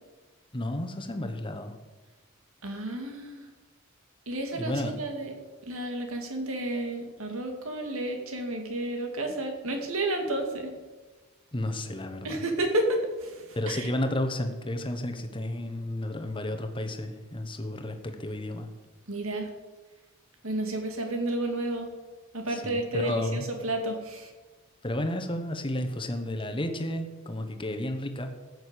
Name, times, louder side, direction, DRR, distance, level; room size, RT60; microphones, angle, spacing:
voice 1, 0.5-1.8 4.5-5.0 11.5-12.4 13.5-18.7 22.5-23.5 24.8-28.3, left 1 dB, 25° left, 6 dB, 1.2 m, -32 dB
voice 2, 2.6-3.5 4.3-5.3 5.6-10.7 12.2-13.9 19.1-19.5 20.4-21.9 22.3-24.3, right 1 dB, 70° right, 4 dB, 2.4 m, -31 dB
13.5 x 6.6 x 8.4 m, 1.3 s
head